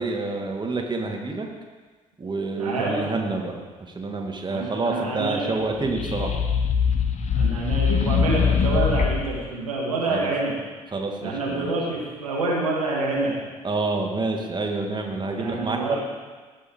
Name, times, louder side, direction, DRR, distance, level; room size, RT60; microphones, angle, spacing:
voice 1, 0.0-1.5 2.2-6.4 10.1-10.3 10.9-11.8 13.6-16.0, right 3 dB, 25° right, 2 dB, 1.8 m, -28 dB
voice 2, 2.6-3.0 4.5-5.5 7.3-10.5 11.2-13.4 15.4-16.0, right 2 dB, 85° right, -3 dB, 1.5 m, -27 dB
sound 1, 5.7-9.4, left 6 dB, 40° left, 1.1 m, -22 dB
16.5 x 5.6 x 4.4 m, 1.4 s
figure-of-eight pair, 50°, 18 cm